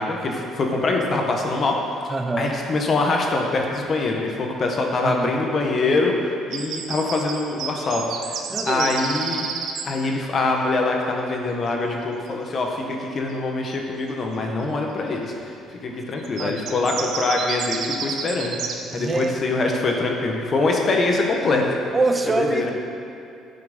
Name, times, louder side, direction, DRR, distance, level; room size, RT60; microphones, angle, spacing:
voice 1, 0.0-1.8 2.4-8.4 8.6-9.4 9.8-15.3 15.8-18.6 18.9-21.6 22.4-22.6, left 3 dB, 40° left, 1 dB, 1.2 m, -24 dB
voice 2, 2.1-2.6 4.9-5.3 8.5-8.9 15.9-16.0 16.4-16.7 18.9-19.3 21.9-22.7, right 2 dB, 20° right, 6 dB, 0.7 m, -24 dB
sound 1, 6.5-9.8 13.7-13.8 16.2-19.3, right 6 dB, 70° right, 0.8 m, -30 dB
9.3 x 5.9 x 5.3 m, 2.6 s
cardioid pair, 125°, 0 cm